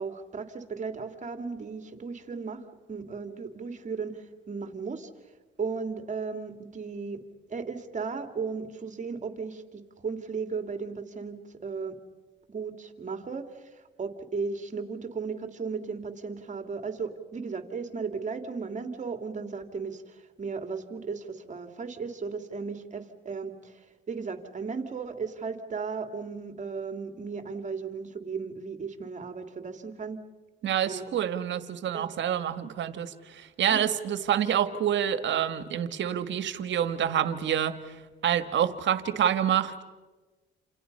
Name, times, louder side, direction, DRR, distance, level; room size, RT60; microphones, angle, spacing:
voice 1, 0.0-5.1 5.6-7.2 7.5-12.0 12.5-30.2 30.9-31.1 31.9-32.1 33.7-33.9, right 5 dB, 40° right, 7 dB, 2.9 m, -36 dB
voice 2, 30.6-37.9 38.2-39.8, right 9 dB, 70° right, 11 dB, 1.6 m, -27 dB
28.5 x 28.5 x 5.6 m, 1.3 s
cardioid pair, 90°, 20 cm